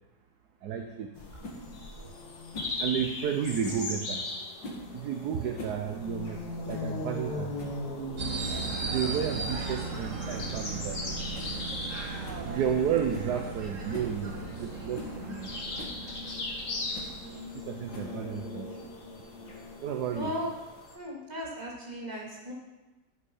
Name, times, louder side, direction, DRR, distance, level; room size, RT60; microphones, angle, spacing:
voice 1, 0.6-1.1 2.8-4.2 4.9-6.4 6.6-7.5 8.8-11.0 12.4-14.3 14.6-15.5 17.7-18.7 19.8-20.3, right 8 dB, 65° right, 5 dB, 1.3 m, -32 dB
sound 1, 1.2-21.0, left 2 dB, 60° left, 2.4 m, -39 dB
sound 2, 1.4-1.6 2.5-2.8 3.6-3.9 4.6-4.9 5.4-5.8 6.1-6.2 6.7-6.9 7.3-7.4 7.6-7.8 8.5-8.8 9.4-9.6 10.3-10.6 10.9-11.0 11.3-11.6 11.8-11.9 12.2-12.5 13.1-13.3 13.9-14.1 14.6-14.7 14.9-15.2 15.8-16.0 16.9-17.2 17.9-18.3, left 1 dB, 90° left, 2.6 m, -42 dB
sound 3, 8.2-18.1, right 3 dB, 45° right, 1.7 m, -37 dB
voice 2, 20.1-20.5 20.9-22.5, equal, 20° right, -4 dB, 3.0 m, -36 dB
13.0 x 8.5 x 5.5 m, 1.1 s
omnidirectional pair, 1.9 m